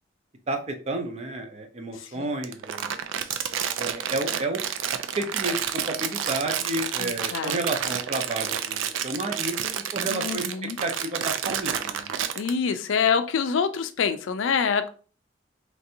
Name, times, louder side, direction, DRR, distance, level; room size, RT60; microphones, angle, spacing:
voice 1, 0.5-2.9 3.8-4.6 5.2-10.4 10.8-12.2, right 2 dB, 35° right, 4 dB, 0.6 m, -31 dB
voice 2, 1.9-2.3 7.0-7.6 10.1-10.8 12.4-14.9, left 6 dB, 80° left, 9 dB, 0.4 m, -26 dB
Crumpling crinkling, 2.4-12.5, right 9 dB, 80° right, 0.4 m, -29 dB
3.2 x 2.6 x 2.7 m, 0.38 s
head